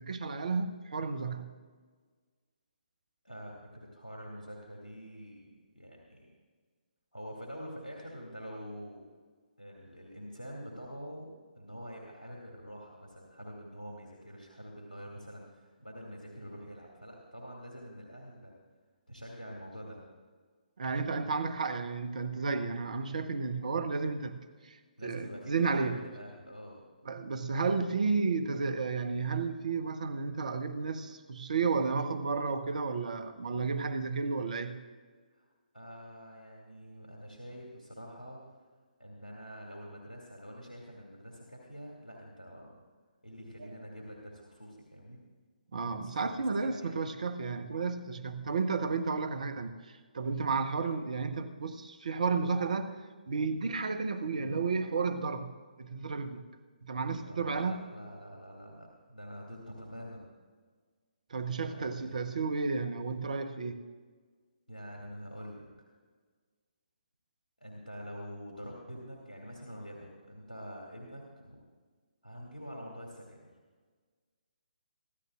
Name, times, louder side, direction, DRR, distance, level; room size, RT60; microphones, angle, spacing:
voice 1, 0.0-1.5 20.8-24.4 24.6-26.0 27.0-34.8 43.6-43.8 45.7-53.0 53.3-55.4 55.8-56.4 56.8-57.8 61.3-63.8, right 4 dB, 55° right, 9 dB, 1.2 m, -32 dB
voice 2, 3.2-6.3 7.1-9.0 9.6-18.5 19.1-20.0 25.0-26.8 35.3-35.5 35.7-38.4 39.0-42.7 43.2-45.2 45.9-47.0 57.2-60.3 61.6-62.4 64.7-65.7 67.6-71.6 72.2-73.5, equal, 85° left, -2 dB, 2.6 m, -46 dB
25.0 x 12.5 x 2.5 m, 1.5 s
figure-of-eight pair, 135°, 5 cm